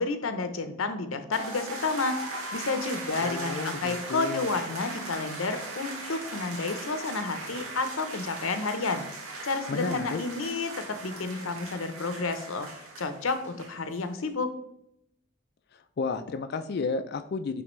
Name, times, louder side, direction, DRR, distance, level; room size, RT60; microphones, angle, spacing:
voice 1, 0.0-2.2 2.5-9.0 9.4-14.5, left 3 dB, 70° left, 9 dB, 0.7 m, -31 dB
sound 1, 1.3-14.0, right 2 dB, 75° right, 1.4 m, -39 dB
voice 2, 3.2-4.5 9.7-10.2 15.7-17.6, left 4 dB, 50° left, 8 dB, 0.3 m, -32 dB
9.3 x 3.4 x 3.1 m, 0.76 s
head